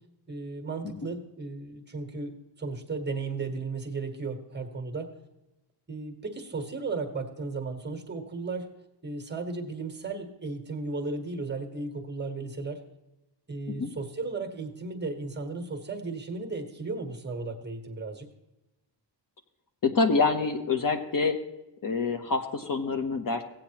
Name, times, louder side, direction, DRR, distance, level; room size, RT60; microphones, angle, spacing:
voice 1, 0.3-5.1 5.9-8.7 9.0-12.8 13.5-18.3, right 3 dB, 25° right, 4 dB, 1.5 m, -35 dB
voice 2, 19.8-21.4 21.8-23.4, left 4 dB, 50° left, 7 dB, 1.0 m, -26 dB
16.5 x 8.8 x 2.9 m, 0.96 s
wide cardioid pair, 155°, 43 cm